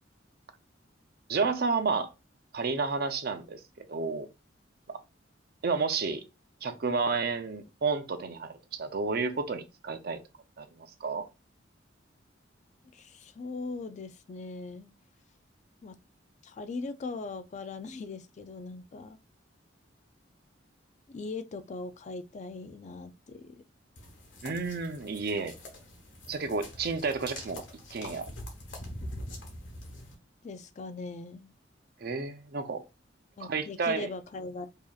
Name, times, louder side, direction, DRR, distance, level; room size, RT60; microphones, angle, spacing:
voice 1, 1.3-2.1 2.5-4.3 4.9-5.0 5.6-6.2 6.6-10.2 10.6-11.2 24.4-25.5 26.3-27.6 27.9-28.3 32.0-32.8 33.4-34.1, right 4 dB, 55° right, 0.6 m, -31 dB
voice 2, 12.9-14.9 15.8-16.0 16.4-19.2 21.1-23.6 30.4-31.5 33.4-34.7, left 3 dB, 40° left, 0.4 m, -40 dB
sound 1, 24.0-30.1, left 1 dB, 85° left, 1.3 m, -44 dB
4.8 x 2.7 x 2.4 m
head